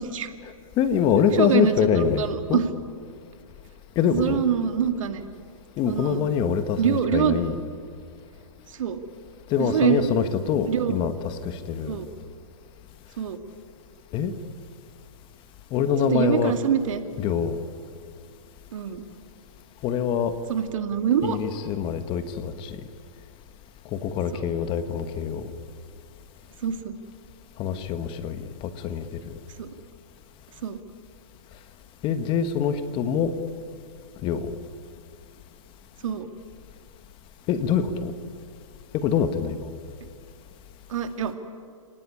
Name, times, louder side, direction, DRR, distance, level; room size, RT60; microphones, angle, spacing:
voice 1, 0.4-2.6 3.9-4.4 5.8-7.6 9.5-12.0 14.1-14.3 15.7-16.6 17.2-17.6 19.8-20.4 21.2-22.8 23.9-25.5 27.6-29.3 32.0-33.3 34.2-34.6 37.5-38.1 38.9-39.7, left 7 dB, 30° left, 10 dB, 1.5 m, -25 dB
voice 2, 1.3-2.7 4.1-5.2 5.9-6.2 6.8-7.4 8.8-9.0 9.6-10.1 10.7-11.0 11.9-12.1 13.2-13.4 16.1-17.0 18.7-19.0 20.5-21.4 24.3-24.5 26.6-27.0 29.6-29.7 30.6-30.8 36.0-36.3 40.9-41.3, right 8 dB, 65° right, 7 dB, 2.4 m, -25 dB
30.0 x 19.0 x 10.0 m, 2.3 s
hypercardioid pair, 135°, 18 cm